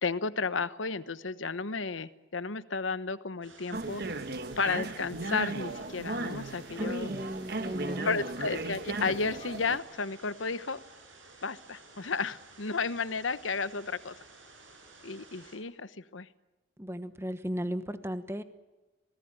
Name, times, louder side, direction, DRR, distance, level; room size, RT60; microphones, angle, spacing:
voice 1, 0.0-4.0 4.6-7.1 8.0-10.8 11.4-14.1 15.0-16.3, left 4 dB, 85° left, 14 dB, 1.1 m, -33 dB
sound 1, 3.4-15.6, right 3 dB, 80° right, 6.9 m, -54 dB
sound 2, 3.7-9.8, right 2 dB, 55° right, 1.4 m, -36 dB
voice 2, 6.8-8.1 16.8-18.4, equal, 15° right, 11 dB, 1.2 m, -36 dB
26.0 x 19.0 x 9.0 m, 1.1 s
head